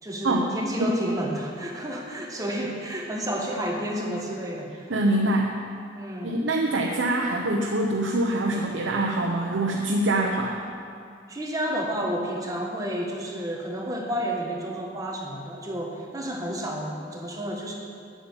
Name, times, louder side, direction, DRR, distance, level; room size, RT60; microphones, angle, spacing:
voice 1, 0.0-4.9 5.9-6.4 11.3-17.7, equal, 20° right, -1 dB, 1.3 m, -31 dB
voice 2, 4.9-5.5 6.2-10.6, right 1 dB, 75° right, 0 dB, 0.9 m, -24 dB
9.4 x 8.5 x 7.1 m, 2.4 s
head